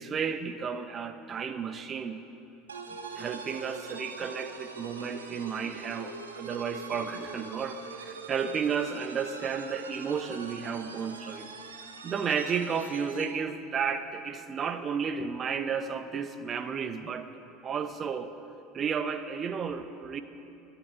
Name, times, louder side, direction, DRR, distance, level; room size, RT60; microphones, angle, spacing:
voice 1, 0.0-2.2 3.1-11.5 12.0-17.3 17.6-18.3 18.7-20.2, right 6 dB, 35° right, 10 dB, 0.9 m, -32 dB
sound 1, 2.7-13.4, right 4 dB, 85° right, 0.9 m, -43 dB
24.5 x 11.5 x 3.9 m, 2.7 s
hypercardioid pair, 75°, 0 cm